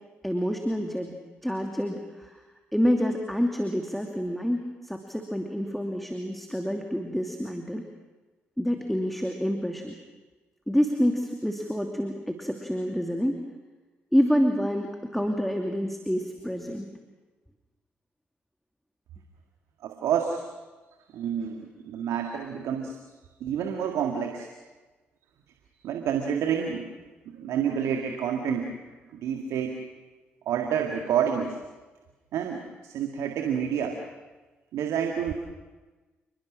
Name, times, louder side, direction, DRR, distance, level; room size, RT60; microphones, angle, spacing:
voice 1, 0.2-1.1 1.4-2.4 2.7-7.8 8.6-9.9 10.7-13.3 14.1-16.9, equal, ahead, 3 dB, 2.7 m, -27 dB
voice 2, 19.8-20.4 21.1-23.0 23.4-24.5 25.8-26.9 27.3-28.8 29.1-29.8 30.5-31.6 32.3-34.0 34.7-35.3, right 8 dB, 70° right, 3 dB, 2.0 m, -28 dB
29.5 x 20.5 x 6.3 m, 1.2 s
hypercardioid pair, 45°, 5 cm